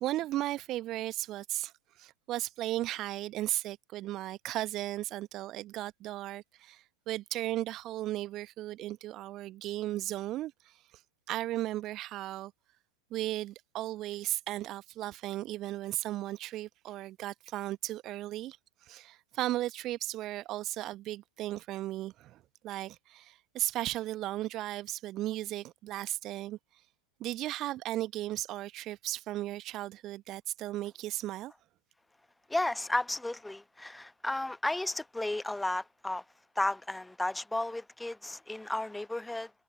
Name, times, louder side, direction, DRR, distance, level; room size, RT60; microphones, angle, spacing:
voice 1, 0.0-11.0 11.3-12.5 13.1-18.6 18.8-26.6 27.2-31.5, right 15 dB, 35° right, 1.1 m, -36 dB
voice 2, 32.5-36.2 36.6-39.5, left 2 dB, 5° left, 1.1 m, -33 dB
figure-of-eight pair, 90°, 0 cm